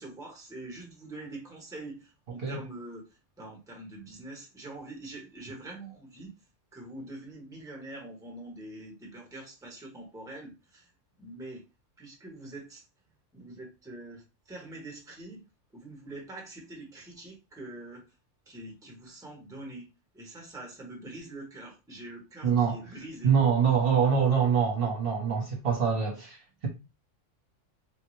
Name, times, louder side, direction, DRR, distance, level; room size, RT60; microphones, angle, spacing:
voice 1, 0.0-6.3 6.7-10.9 11.2-11.6 12.0-12.9 13.3-15.4 15.7-18.0 18.5-19.9 20.1-23.3, right 2 dB, 5° right, 0.9 m, -44 dB
voice 2, 22.4-22.8 23.2-26.7, right 7 dB, 50° right, 1.0 m, -25 dB
3.5 x 2.1 x 3.1 m
omnidirectional pair, 1.3 m